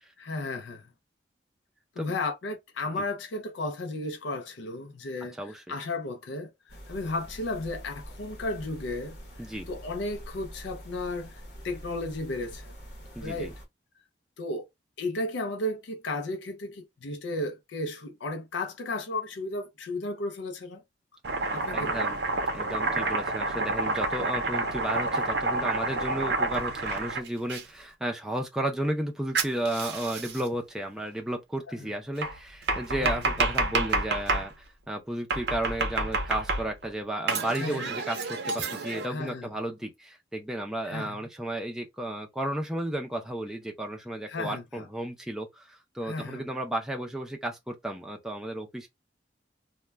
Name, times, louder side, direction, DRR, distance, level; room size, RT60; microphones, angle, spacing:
voice 1, 0.2-0.9 2.0-9.2 9.7-12.7 13.2-13.5 14.4-14.7 15.0-20.8 21.5-22.2 31.8-31.9 33.0-33.1 37.5-37.9 39.1-39.5 40.8-41.2 44.3-44.9 46.0-46.4, left 2 dB, 75° left, 0.4 m, -34 dB
voice 2, 5.3-5.7 9.4-9.7 13.2-13.5 21.7-22.2 22.5-48.9, right 1 dB, 5° right, 0.4 m, -33 dB
sound 1, 6.7-13.7, equal, 60° left, 0.8 m, -45 dB
Domestic sounds home sounds, 21.2-27.6 29.3-30.5 32.2-34.5 35.3-36.9 37.3-39.1, right 3 dB, 65° right, 0.6 m, -29 dB
2.1 x 2.1 x 3.3 m
head